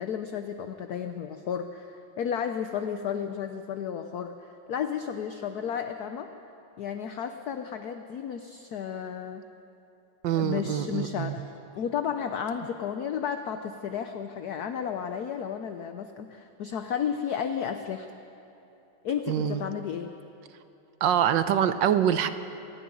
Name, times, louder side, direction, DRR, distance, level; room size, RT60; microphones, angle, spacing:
voice 1, 0.0-6.3 6.8-9.4 10.3-11.5 11.7-18.1 19.0-20.1, left 8 dB, 60° left, 7 dB, 1.1 m, -33 dB
voice 2, 10.2-11.4 19.3-19.7 21.0-22.3, right 9 dB, 65° right, 11 dB, 1.4 m, -25 dB
25.5 x 11.0 x 9.8 m, 3.0 s
omnidirectional pair, 2.3 m